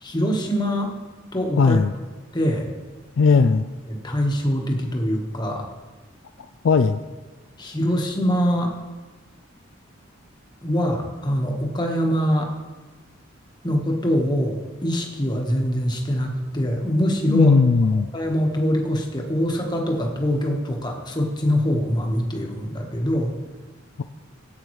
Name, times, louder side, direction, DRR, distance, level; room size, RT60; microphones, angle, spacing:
voice 1, 0.0-1.0 1.3-1.8 2.3-2.7 3.9-5.7 7.6-8.7 10.6-12.5 13.6-17.6 18.1-23.3, equal, 20° left, 1 dB, 1.3 m, -23 dB
voice 2, 1.6-1.9 3.2-3.6 6.6-7.0 17.3-18.1, left 4 dB, 65° left, 9 dB, 0.4 m, -17 dB
16.0 x 8.6 x 3.2 m, 1.2 s
head